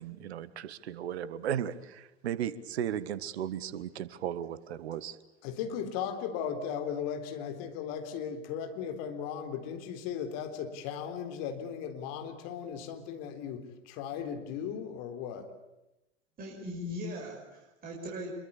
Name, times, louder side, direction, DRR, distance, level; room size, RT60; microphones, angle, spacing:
voice 1, 0.0-5.2, right 10 dB, 60° right, 16 dB, 1.6 m, -35 dB
voice 2, 5.4-15.5, left 8 dB, 45° left, 7 dB, 3.9 m, -37 dB
voice 3, 16.4-18.4, left 1 dB, 25° right, -1 dB, 5.8 m, -39 dB
26.5 x 23.0 x 8.5 m, 0.93 s
figure-of-eight pair, 90°, 37 cm